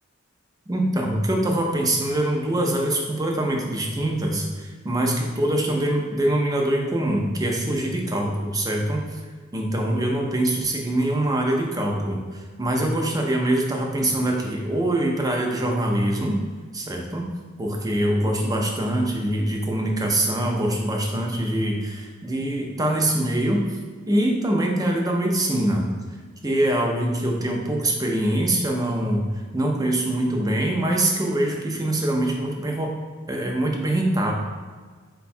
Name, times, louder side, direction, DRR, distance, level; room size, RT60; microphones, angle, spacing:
voice 1, 0.7-9.2 9.5-16.4 16.7-17.2 17.6-23.8 24.1-25.8 26.4-29.2 29.5-32.9 33.3-34.3, right 1 dB, 20° right, 0 dB, 0.5 m, -24 dB
4.4 x 2.3 x 4.2 m, 1.5 s
head